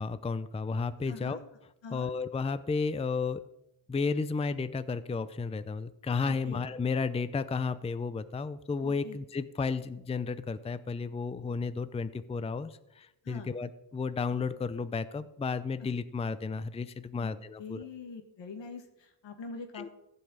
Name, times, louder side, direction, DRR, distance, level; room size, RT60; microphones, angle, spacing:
voice 1, 0.0-1.4 1.9-3.4 3.9-17.9 19.7-19.9, left 4 dB, 15° left, 14 dB, 0.5 m, -33 dB
voice 2, 1.1-1.4 1.8-2.1 6.2-6.6 8.8-9.2 13.2-13.5 15.8-15.9 17.2-19.9, left 4 dB, 80° left, 7 dB, 1.9 m, -44 dB
15.5 x 5.5 x 8.7 m, 0.88 s
wide cardioid pair, 120°, 43 cm